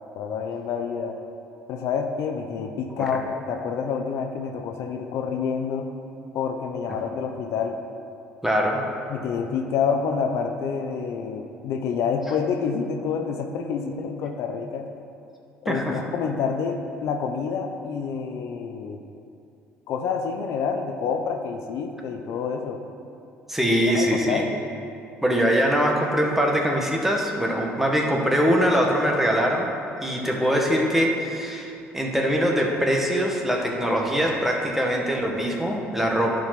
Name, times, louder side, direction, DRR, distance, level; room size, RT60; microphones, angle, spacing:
voice 1, 0.1-1.2 1.7-5.9 6.3-7.8 9.1-14.9 15.6-19.0 19.9-22.8 23.9-24.5, left 6 dB, 70° left, 4 dB, 0.7 m, -28 dB
voice 2, 8.4-8.8 15.7-16.0 23.5-24.4 25.2-29.7 30.0-36.4, equal, 5° right, 0 dB, 1.6 m, -22 dB
11.5 x 5.2 x 5.9 m, 2.6 s
supercardioid pair, 80°, 5 cm